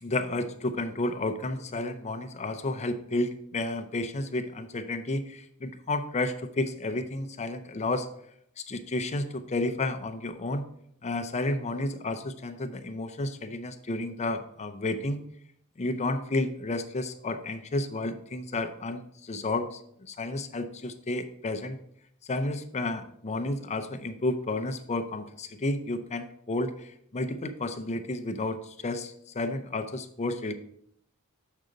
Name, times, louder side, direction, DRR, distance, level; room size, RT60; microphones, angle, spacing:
voice 1, 0.0-8.1 8.7-10.7 11.0-15.2 15.8-21.8 22.3-30.5, left 2 dB, 30° left, 8 dB, 0.5 m, -31 dB
6.4 x 3.8 x 5.0 m, 0.70 s
head